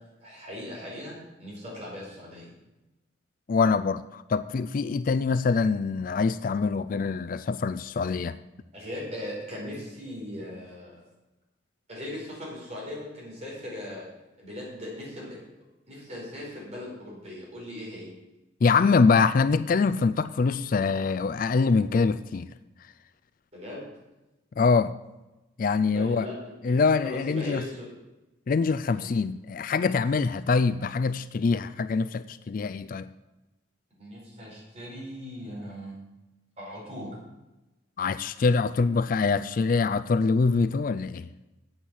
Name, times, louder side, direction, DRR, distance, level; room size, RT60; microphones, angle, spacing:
voice 1, 0.2-1.1 1.4-2.5 8.7-10.9 11.9-14.1 14.4-15.3 15.9-18.1 23.5-23.9 25.9-26.3 26.6-27.9 28.9-29.1 34.0-36.1 36.6-37.2, left 1 dB, 35° right, 4.9 m, -39 dB
voice 2, 3.5-8.4 18.6-22.5 24.6-24.9 25.6-26.3 26.6-27.6 28.5-33.1 38.0-41.3, left 4 dB, 45° left, 0.3 m, -24 dB
8.7 x 8.3 x 7.2 m
head